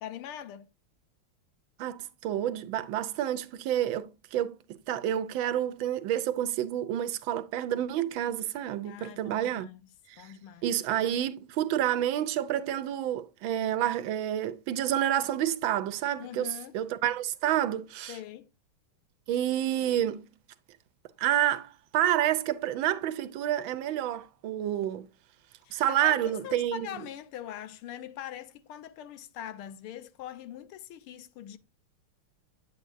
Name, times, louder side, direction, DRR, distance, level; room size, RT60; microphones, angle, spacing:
voice 1, 0.0-0.7 8.8-9.8 10.2-10.7 16.2-16.8 18.1-18.5 25.6-31.6, left 10 dB, 85° left, 1.7 m, -42 dB
voice 2, 1.8-9.7 10.1-10.3 10.6-18.2 19.3-20.3 21.2-25.1 25.7-26.9, right 11 dB, 75° right, 1.4 m, -29 dB
9.0 x 8.3 x 2.6 m
omnidirectional pair, 2.3 m